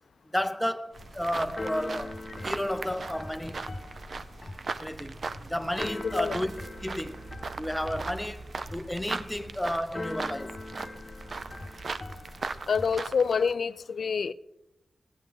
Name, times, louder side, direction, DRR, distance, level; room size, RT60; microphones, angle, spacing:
voice 1, 0.3-2.2 2.4-3.7 4.8-6.5 6.8-7.2 7.6-10.6, left 1 dB, 5° left, 0.6 m, -32 dB
Keyboard (musical), 0.9-13.0, left 2 dB, 30° left, 1.3 m, -42 dB
sound 1, 0.9-13.5, right 4 dB, 55° right, 0.5 m, -39 dB
voice 2, 6.0-6.4 12.7-14.3, left 6 dB, 75° left, 0.4 m, -27 dB
15.5 x 10.0 x 3.8 m
wide cardioid pair, 105°, 0 cm